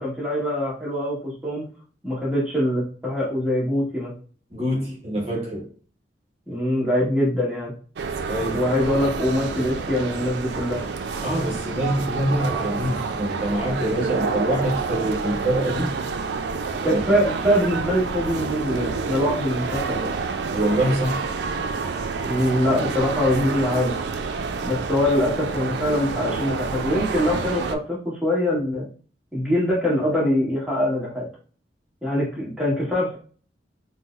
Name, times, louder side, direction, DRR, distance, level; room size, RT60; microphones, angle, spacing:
voice 1, 0.0-1.6 2.0-4.1 6.5-7.7 8.5-10.8 16.8-20.1 22.2-24.0 24.6-28.9 29.3-31.3 32.0-33.2, left 1 dB, 5° right, 1.2 m, -23 dB
voice 2, 4.5-5.7 8.3-8.7 11.2-15.9 16.8-17.2 20.5-21.3, right 1 dB, 35° right, 0.8 m, -25 dB
sound 1, 8.0-27.8, right 4 dB, 75° right, 0.3 m, -28 dB
4.0 x 2.0 x 2.4 m
head